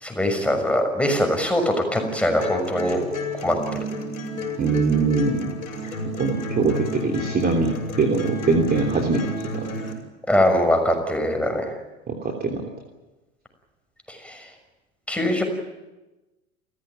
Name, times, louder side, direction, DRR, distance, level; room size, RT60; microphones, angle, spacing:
voice 1, 0.0-3.0 3.4-3.5 10.3-11.6 14.2-14.3 15.1-15.4, left 1 dB, 5° left, 4 dB, 6.3 m, -22 dB
sound 1, 1.9-9.9, equal, 85° left, 6.1 m, -31 dB
voice 2, 4.6-5.5 6.2-9.3 9.5-9.6 12.1-12.2 12.4-12.6, right 4 dB, 25° right, 2 dB, 3.1 m, -22 dB
29.5 x 15.0 x 9.4 m, 1.1 s
hypercardioid pair, 90°, 40 cm